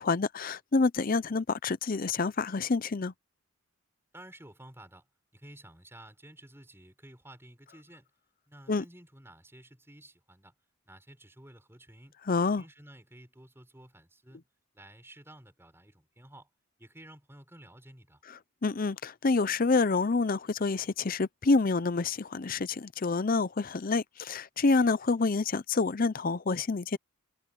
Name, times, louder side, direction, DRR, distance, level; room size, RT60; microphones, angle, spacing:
voice 1, 0.0-3.1 8.7-8.8 12.3-12.6 18.6-27.0, left 3 dB, 40° left, 0.6 m, -27 dB
voice 2, 4.1-5.1 5.3-8.1 8.5-10.5 10.9-12.2 12.6-14.4 14.7-16.5 16.8-18.2, right 1 dB, 10° right, 5.9 m, -52 dB
head